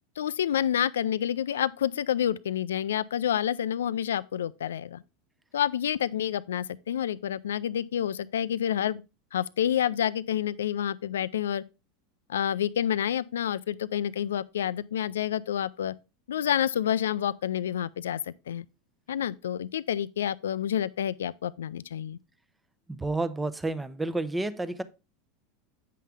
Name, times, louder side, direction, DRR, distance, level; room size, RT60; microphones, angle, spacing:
voice 1, 0.2-5.0 5.5-9.0 9.3-11.6 12.3-15.9 16.3-18.7 19.1-22.2, left 10 dB, 85° left, 0.3 m, -28 dB
voice 2, 22.9-24.8, right 2 dB, 10° right, 0.7 m, -30 dB
8.4 x 5.7 x 3.4 m
hypercardioid pair, 95°, 0 cm